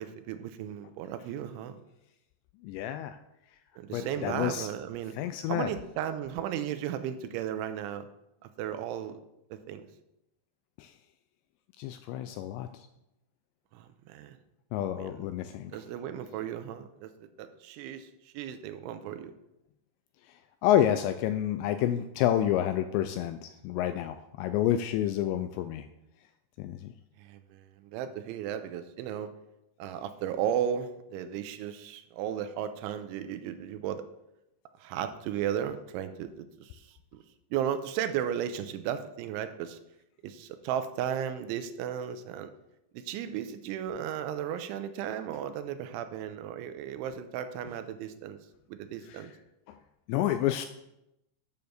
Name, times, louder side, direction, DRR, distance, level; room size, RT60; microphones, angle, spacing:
voice 1, 0.0-1.8 3.8-5.2 5.5-8.0 8.6-9.2 9.5-9.9 13.7-14.4 14.9-15.3 15.7-19.3 27.2-29.3 29.8-34.0 34.8-37.2 37.5-39.8 40.2-42.5 42.9-48.4 48.7-49.3, right 9 dB, 90° right, 10 dB, 3.1 m, -35 dB
voice 2, 2.6-3.2 3.9-4.7 5.2-5.7 10.8-10.9 11.8-12.7 14.7-15.7 20.6-25.9 26.6-26.9 49.1-49.2 50.1-50.7, left 11 dB, 85° left, 9 dB, 2.5 m, -29 dB
9.2 x 7.0 x 6.6 m, 0.89 s
omnidirectional pair, 5.5 m